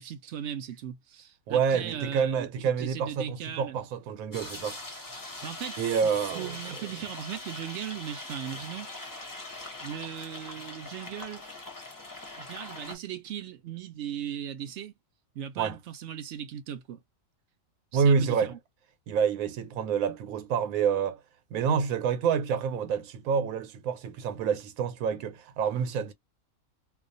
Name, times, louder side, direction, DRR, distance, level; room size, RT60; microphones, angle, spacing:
voice 1, 0.0-3.8 5.4-6.1 6.3-8.9 9.8-11.4 12.4-15.0 15.3-17.0 17.9-18.6, right 9 dB, 65° right, 0.8 m, -38 dB
voice 2, 1.5-4.8 5.8-6.6 15.6-15.8 17.9-18.5 19.1-21.2 21.5-26.1, right 6 dB, 85° right, 1.0 m, -28 dB
sound 1, 4.3-13.0, left 2 dB, 20° left, 0.6 m, -42 dB
2.4 x 2.2 x 2.5 m
omnidirectional pair, 1.4 m